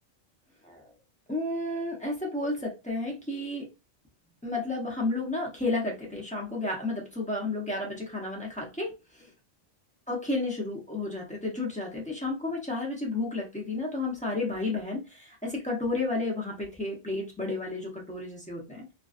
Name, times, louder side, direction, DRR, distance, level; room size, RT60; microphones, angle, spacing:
voice 1, 1.3-3.7 4.4-9.3 10.1-18.8, left 2 dB, 10° left, -3 dB, 0.5 m, -32 dB
2.5 x 2.3 x 2.4 m, 0.27 s
omnidirectional pair, 1.3 m